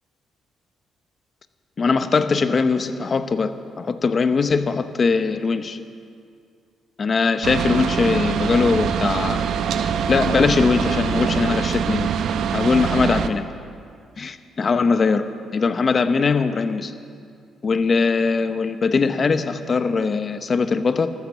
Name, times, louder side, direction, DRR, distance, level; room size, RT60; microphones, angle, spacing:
voice 1, 1.8-5.8 7.0-9.4 10.1-12.1 12.5-13.5 14.2-16.9 17.6-21.1, left 4 dB, 40° left, 10 dB, 0.9 m, -21 dB
sound 1, 7.4-13.3, right 7 dB, 75° right, 0.8 m, -23 dB
13.0 x 13.0 x 7.3 m, 2.3 s
cardioid pair, 90°, 0 cm